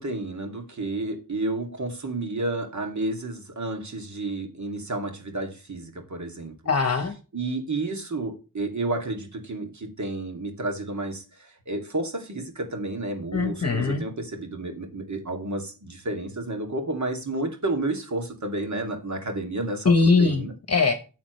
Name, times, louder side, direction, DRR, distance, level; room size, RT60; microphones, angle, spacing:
voice 1, 0.0-6.5 7.3-20.5, right 2 dB, 50° right, 2.4 m, -31 dB
voice 2, 6.7-7.2 13.3-14.0 19.8-20.9, left 4 dB, 45° left, 1.0 m, -21 dB
9.7 x 7.4 x 3.1 m
wide cardioid pair, 110°, 37 cm